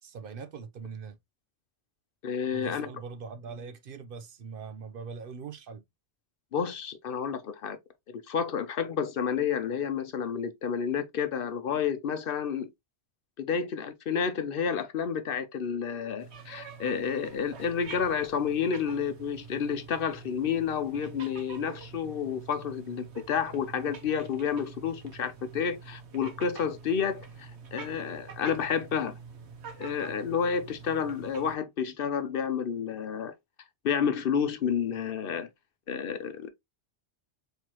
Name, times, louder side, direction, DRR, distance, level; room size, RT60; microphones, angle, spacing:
voice 1, 0.0-1.2 2.5-5.8, right 5 dB, 60° right, 0.8 m, -42 dB
voice 2, 2.2-2.9 6.5-7.8 8.1-12.7 13.4-29.1 29.8-33.3 33.8-35.5 35.9-36.5, left 7 dB, 60° left, 0.8 m, -30 dB
sound 1, 16.2-31.6, right 5 dB, 90° right, 1.2 m, -46 dB
4.6 x 3.3 x 2.9 m
omnidirectional pair, 1.1 m